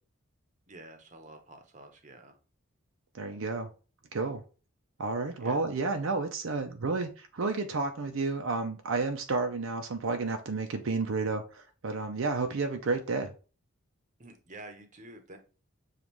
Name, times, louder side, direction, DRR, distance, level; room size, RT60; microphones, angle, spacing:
voice 1, 0.7-2.3 5.4-5.6 14.2-15.4, right 2 dB, 35° right, 5 dB, 0.8 m, -49 dB
voice 2, 3.1-3.7 4.1-4.4 5.0-13.3, right 3 dB, 65° right, 5 dB, 0.5 m, -31 dB
7.1 x 2.4 x 3.0 m, 0.36 s
head